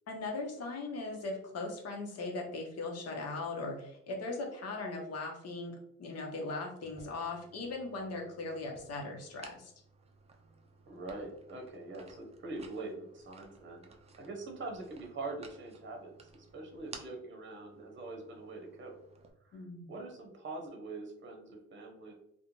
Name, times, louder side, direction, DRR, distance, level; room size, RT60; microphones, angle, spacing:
voice 1, 0.1-9.7 19.5-19.9, left 3 dB, 55° left, 0 dB, 0.8 m, -39 dB
sound 1, 6.8-19.3, right 4 dB, 20° right, 0.4 m, -57 dB
voice 2, 10.9-19.0 19.5-19.6 19.9-22.1, right 3 dB, 40° right, 2 dB, 0.8 m, -44 dB
2.4 x 2.2 x 3.0 m, 0.74 s
cardioid pair, 90°, 30 cm